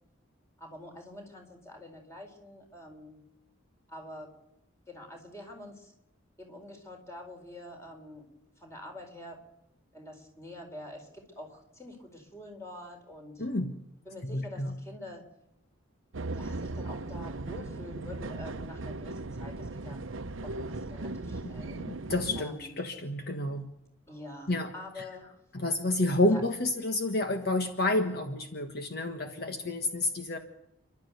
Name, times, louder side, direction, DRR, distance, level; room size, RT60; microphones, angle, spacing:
voice 1, 0.6-3.2 3.9-4.3 4.9-5.9 6.4-8.3 8.6-9.4 9.9-13.4 14.0-15.3 16.3-20.0 20.4-21.8 22.4-22.7 24.1-25.4 26.3-26.4, left 1 dB, 15° left, 3 dB, 4.5 m, -46 dB
voice 2, 13.4-13.7 14.2-14.7 21.4-23.7 24.5-24.7 25.0-25.1 25.5-30.4, left 2 dB, 50° left, 6 dB, 1.5 m, -30 dB
sound 1, 16.1-22.4, right 2 dB, 75° right, 0.8 m, -37 dB
29.5 x 12.0 x 9.3 m, 0.86 s
head